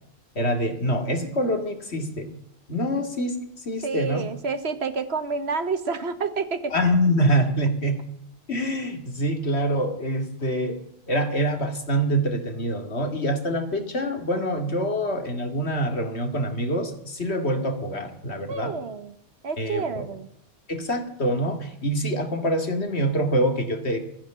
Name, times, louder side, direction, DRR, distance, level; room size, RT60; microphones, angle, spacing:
voice 1, 0.4-2.3 2.7-3.3 3.7-4.2 6.7-8.0 8.5-10.8 11.1-18.7 19.6-20.1 20.7-24.0, equal, 80° left, 6 dB, 2.5 m, -25 dB
voice 2, 3.8-6.7 18.5-19.2 19.4-20.3, right 5 dB, 75° right, 11 dB, 1.5 m, -29 dB
14.0 x 10.5 x 8.9 m, 0.73 s
omnidirectional pair, 1.1 m